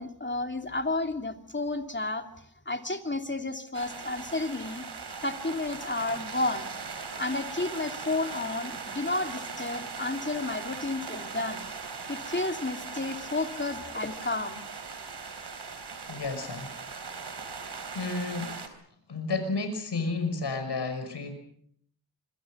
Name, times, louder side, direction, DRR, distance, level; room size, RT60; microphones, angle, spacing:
voice 1, 0.0-2.3 2.7-4.8 5.2-6.7 7.2-11.7 12.1-14.6, left 2 dB, 30° left, 6 dB, 2.9 m, -31 dB
sound 1, 3.7-18.7, right 5 dB, 80° right, 3.7 m, -39 dB
voice 2, 16.1-16.8 17.9-18.6 19.1-21.3, left 3 dB, 90° left, 7 dB, 5.8 m, -31 dB
26.0 x 23.5 x 6.3 m, 0.65 s
cardioid pair, 60°, 40 cm